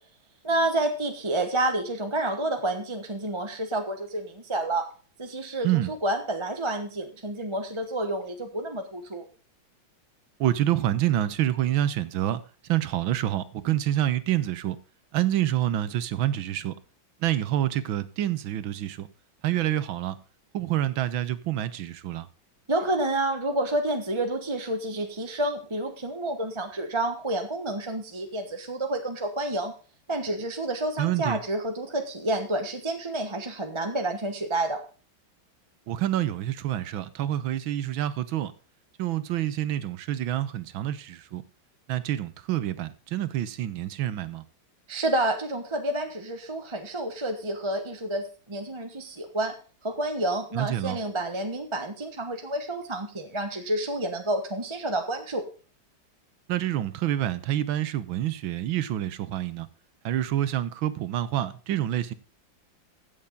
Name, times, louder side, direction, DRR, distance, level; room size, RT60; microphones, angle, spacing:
voice 1, 0.4-4.9 5.2-9.3 22.7-29.7 30.1-34.8 44.9-49.5 49.8-55.4, right 1 dB, 20° right, 0.9 m, -29 dB
voice 2, 10.4-12.4 12.7-14.8 15.1-16.7 17.2-19.1 19.4-20.2 20.5-22.3 31.0-31.4 35.9-38.5 39.0-41.4 41.9-44.4 50.5-51.0 56.5-59.7 60.0-62.1, right 12 dB, 80° right, 1.7 m, -27 dB
15.5 x 7.3 x 3.7 m
omnidirectional pair, 2.2 m